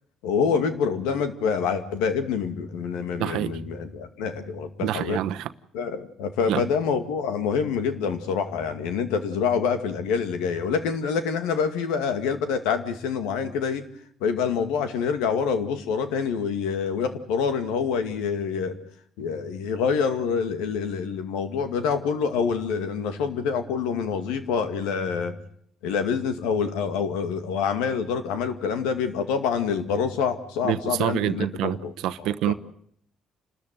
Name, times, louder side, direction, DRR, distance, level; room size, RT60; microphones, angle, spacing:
voice 1, 0.2-5.2 5.7-13.8 14.2-18.8 19.2-25.4 25.8-31.9 32.2-32.5, left 6 dB, 90° left, 2.3 m, -26 dB
voice 2, 3.2-3.6 4.8-5.5 6.5-6.7 30.6-31.8 32.0-32.5, right 13 dB, 80° right, 1.0 m, -26 dB
29.0 x 13.5 x 9.3 m
supercardioid pair, 75°, 0 cm